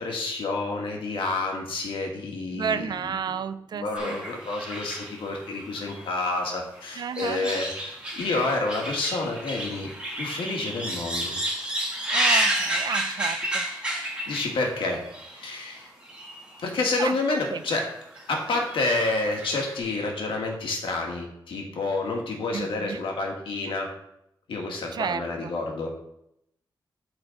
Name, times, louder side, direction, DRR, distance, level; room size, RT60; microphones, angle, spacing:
voice 1, 0.0-2.8 3.7-9.9 10.2-11.4 14.3-15.1 15.3-15.9 16.6-17.8 18.3-23.9 24.5-25.9, left 3 dB, 85° left, 1 dB, 1.9 m, -29 dB
voice 2, 2.5-4.2 7.0-7.6 12.1-13.7 17.0-17.6 18.5-18.6 22.5-23.0 24.9-25.5, right 7 dB, 55° right, 13 dB, 0.4 m, -32 dB
sound 1, 4.0-6.4 6.7-14.7 15.1-15.4 16.0-16.5 16.8-16.9 17.8-18.2 18.5-19.7, right 1 dB, 10° right, 2.4 m, -30 dB
12.5 x 4.4 x 3.9 m, 0.80 s
wide cardioid pair, 160°, 9 cm